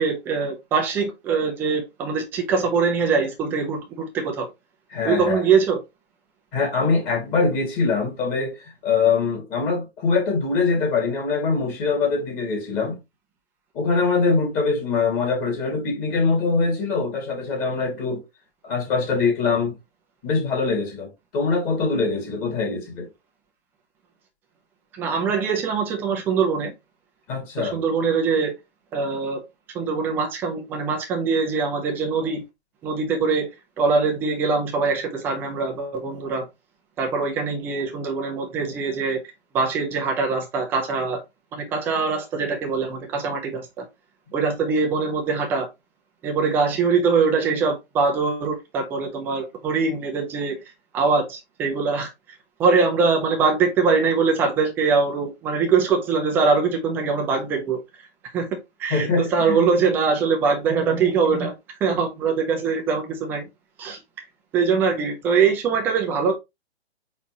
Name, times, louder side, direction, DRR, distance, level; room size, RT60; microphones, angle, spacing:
voice 1, 0.0-4.5 5.0-5.8 24.9-26.7 27.6-28.5 28.9-29.4 29.7-32.4 32.8-33.5 33.8-36.5 37.0-39.2 39.5-41.2 41.5-43.9 44.3-45.7 46.2-50.6 50.9-52.1 52.6-57.8 58.3-61.5 61.8-63.4 63.8-64.0 64.5-66.3, right 5 dB, 5° right, 0.4 m, -22 dB
voice 2, 4.9-5.4 6.5-13.0 13.7-18.2 18.6-19.8 20.2-23.1 27.3-27.7 58.9-59.6, left 4 dB, 25° left, 1.9 m, -23 dB
4.3 x 4.3 x 2.8 m
hypercardioid pair, 130°, 33 cm